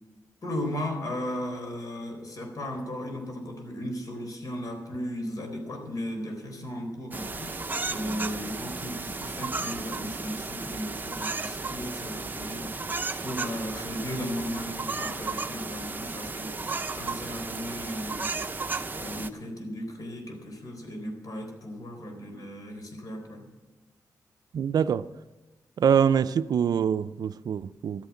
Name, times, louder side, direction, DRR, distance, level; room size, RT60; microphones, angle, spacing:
voice 1, 0.4-23.5, equal, 55° left, 4.0 m, -36 dB
sound 1, 7.1-19.3, right 3 dB, 25° right, 0.9 m, -34 dB
voice 2, 24.5-25.1 25.8-28.1, right 7 dB, 65° right, 0.4 m, -24 dB
13.0 x 9.4 x 7.3 m
cardioid pair, 85°, 7 cm